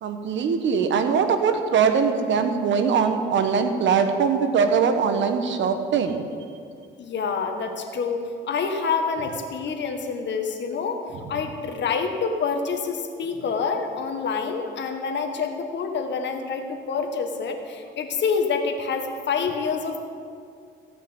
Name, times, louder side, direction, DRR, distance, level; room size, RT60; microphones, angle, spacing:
voice 1, 0.0-6.2, right 6 dB, 70° right, 7 dB, 1.3 m, -22 dB
voice 2, 7.0-11.0 11.3-20.0, left 5 dB, 65° left, 5 dB, 1.6 m, -27 dB
15.0 x 5.9 x 8.9 m, 2.3 s
cardioid pair, 90°, 20 cm